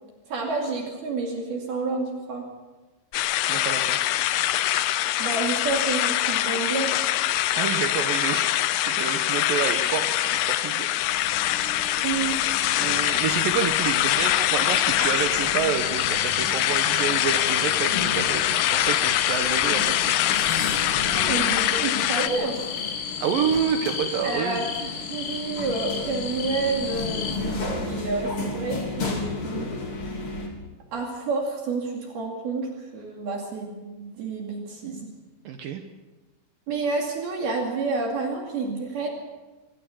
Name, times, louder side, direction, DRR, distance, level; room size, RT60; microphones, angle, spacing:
voice 1, 0.3-2.5 5.2-6.9 12.0-12.4 21.2-22.6 24.2-29.7 30.9-35.1 36.7-39.1, right 3 dB, 55° right, 1 dB, 4.0 m, -29 dB
sound 1, 3.1-22.3, left 14 dB, 85° left, 2.3 m, -24 dB
voice 2, 3.4-4.0 7.6-10.9 12.8-20.1 23.2-24.6 35.5-35.8, right 8 dB, 90° right, 6 dB, 1.9 m, -29 dB
sound 2, 11.0-30.5, left 3 dB, 30° left, 3.3 m, -35 dB
sound 3, 15.7-27.4, left 7 dB, 70° left, 5.2 m, -34 dB
26.0 x 16.5 x 7.1 m, 1.2 s
omnidirectional pair, 5.7 m